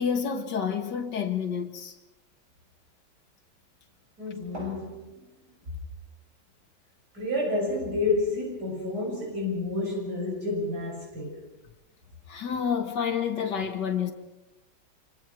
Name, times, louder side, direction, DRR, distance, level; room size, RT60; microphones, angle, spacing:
voice 1, 0.0-1.9 12.3-14.1, left 7 dB, 75° left, 2.4 m, -29 dB
voice 2, 4.2-5.1 7.1-11.4, left 2 dB, 65° right, 7.9 m, -29 dB
27.5 x 25.5 x 4.7 m
omnidirectional pair, 1.9 m